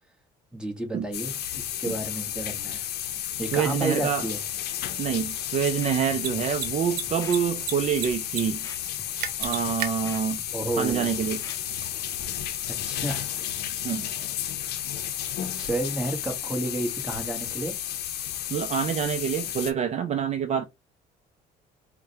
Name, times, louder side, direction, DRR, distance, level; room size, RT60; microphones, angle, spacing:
voice 1, 0.5-2.9 3.4-4.4 10.5-11.1 12.7-13.3 15.5-17.8, right 2 dB, 5° right, 1.1 m, -31 dB
sound 1, 1.1-19.7, left 11 dB, 70° left, 0.6 m, -32 dB
voice 2, 3.5-4.2 5.0-8.7 9.4-10.4 10.8-11.4 13.8-14.1 18.5-20.6, right 8 dB, 40° right, 0.4 m, -26 dB
Mechanisms, 3.7-3.8 6.1-6.3 6.6-6.7 6.9-7.7 8.0-8.4 8.7-8.8 9.2-9.9, right 8 dB, 80° right, 0.8 m, -30 dB
Scratching (performance technique), 5.1-5.3 5.7-6.2 6.5-6.7 7.1-7.4 7.9-8.1 8.5-9.0 9.3-9.5 9.8-10.9 11.3-11.8 12.1-12.3, left 2 dB, 20° left, 0.7 m, -45 dB
4.7 x 2.1 x 2.8 m
cardioid pair, 110°, 17 cm